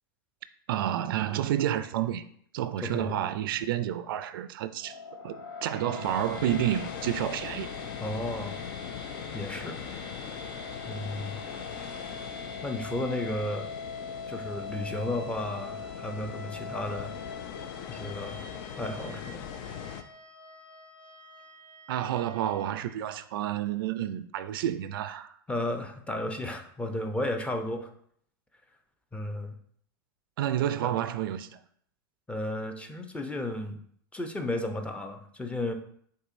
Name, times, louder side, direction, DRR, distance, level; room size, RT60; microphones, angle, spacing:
voice 1, 0.7-2.2 2.5-5.0 5.2-7.7 21.9-25.4 30.4-31.6, right 11 dB, 70° right, 0.4 m, -30 dB
voice 2, 2.8-3.2 8.0-8.6 9.3-9.8 10.9-11.4 12.6-13.7 14.3-17.1 17.9-18.4 18.8-19.4 25.5-27.9 29.1-29.5 30.8-30.9 32.3-33.8 34.1-35.7, left 1 dB, 10° left, 0.7 m, -33 dB
sound 1, 4.8-23.0, left 4 dB, 80° left, 1.2 m, -43 dB
sound 2, 6.0-20.0, left 9 dB, 60° left, 0.5 m, -41 dB
5.3 x 3.7 x 2.6 m
hypercardioid pair, 95°, 12 cm